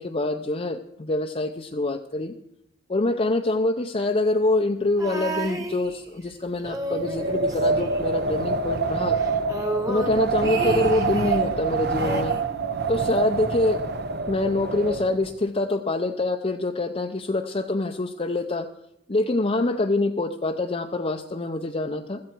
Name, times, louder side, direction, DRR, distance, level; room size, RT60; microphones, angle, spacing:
voice 1, 0.0-2.3 2.9-9.2 9.9-12.4 12.9-13.8 14.3-18.7 19.1-22.2, left 2 dB, 30° left, 4 dB, 0.6 m, -25 dB
sound 1, 5.0-6.3 6.6-8.5 8.8-8.9 9.2-11.6 12.0-13.2 14.1-14.2, right 2 dB, 15° right, 1.4 m, -33 dB
Wind, 6.9-15.3, right 4 dB, 55° right, 1.0 m, -26 dB
16.0 x 13.5 x 4.5 m, 0.79 s
head